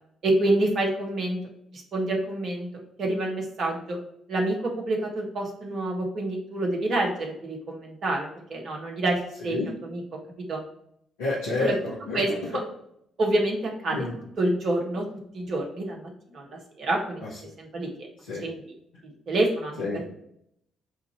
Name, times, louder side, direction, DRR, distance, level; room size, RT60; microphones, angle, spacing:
voice 1, 0.2-1.4 1.7-2.7 3.0-4.0 4.3-10.0 10.4-10.6 11.6-11.7 12.1-12.3 13.2-14.1 14.4-15.0 15.3-17.2 17.6-18.1 18.4-18.6 19.3-20.0, right 2 dB, 55° right, 0 dB, 1.6 m, -27 dB
voice 2, 11.2-12.2 13.9-14.1 17.2-17.3 18.2-18.4 19.8-20.1, left 3 dB, 80° left, -7 dB, 1.1 m, -29 dB
7.9 x 2.8 x 4.4 m, 0.72 s
hypercardioid pair, 45°, 0 cm